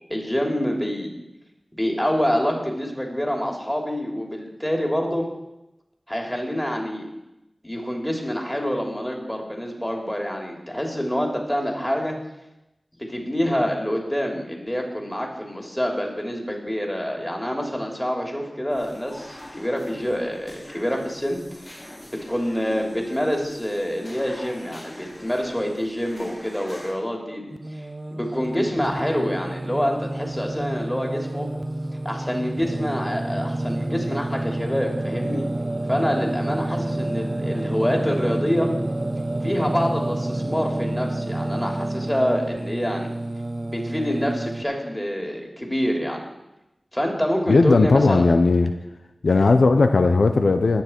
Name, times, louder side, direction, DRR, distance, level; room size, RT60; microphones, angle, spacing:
voice 1, 0.1-1.1 1.7-5.3 6.1-7.1 7.6-12.2 13.0-21.8 22.1-27.4 27.7-31.5 32.0-35.5 35.9-38.7 39.4-43.1 43.6-46.2 46.9-48.3, equal, 15° left, 1 dB, 3.0 m, -26 dB
sound 1, 18.7-26.9, left 1 dB, 40° left, 4.7 m, -43 dB
Singing, 27.5-44.6, right 1 dB, 45° right, 0.6 m, -29 dB
voice 2, 47.5-48.7 49.2-50.8, left 3 dB, 85° left, 7 dB, 0.6 m, -17 dB
20.0 x 7.2 x 4.5 m, 0.94 s
cardioid pair, 45°, 0 cm